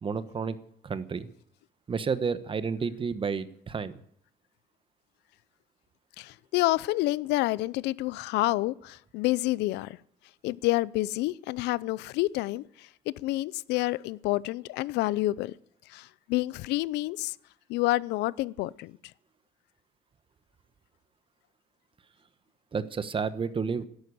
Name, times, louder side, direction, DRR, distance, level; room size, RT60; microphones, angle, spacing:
voice 1, 0.0-0.6 0.8-1.3 1.9-3.9 22.7-23.9, right 5 dB, 30° right, 1.2 m, -31 dB
voice 2, 6.2-10.0 10.4-15.5 15.9-17.4 17.7-18.9, left 18 dB, 90° left, 0.6 m, -28 dB
12.0 x 11.5 x 8.3 m
cardioid pair, 110°, 17 cm